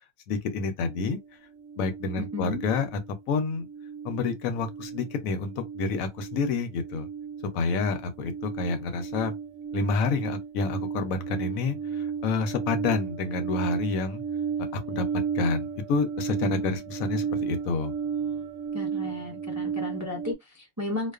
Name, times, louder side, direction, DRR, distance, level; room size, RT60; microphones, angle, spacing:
voice 1, 0.3-1.2 1.8-3.0 3.3-3.7 4.0-7.1 7.5-9.3 9.7-14.2 14.7-15.0 15.3-17.9, left 4 dB, 80° left, 1.0 m, -28 dB
sound 1, 0.9-3.2 3.5-20.3, right 6 dB, 70° right, 0.9 m, -34 dB
voice 2, 2.3-2.6 16.4-16.5 18.7-21.1, left 2 dB, 30° right, 0.3 m, -34 dB
2.3 x 2.3 x 2.3 m
omnidirectional pair, 1.5 m